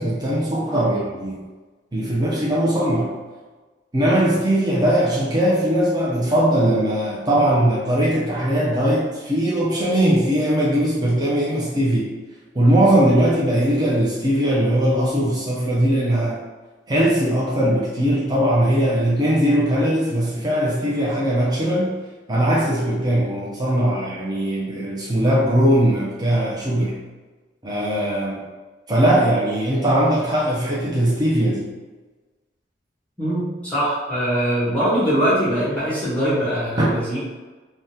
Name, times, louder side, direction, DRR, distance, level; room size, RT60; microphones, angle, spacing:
voice 1, 0.0-1.4 1.9-3.1 3.9-12.1 12.5-16.4 16.9-21.9 22.3-27.0 27.6-28.4 28.9-31.7 36.8-36.9, right 1 dB, 20° right, -6 dB, 0.4 m, -20 dB
voice 2, 33.2-37.2, equal, 5° left, -11 dB, 0.9 m, -22 dB
3.5 x 2.1 x 2.7 m, 1.3 s
head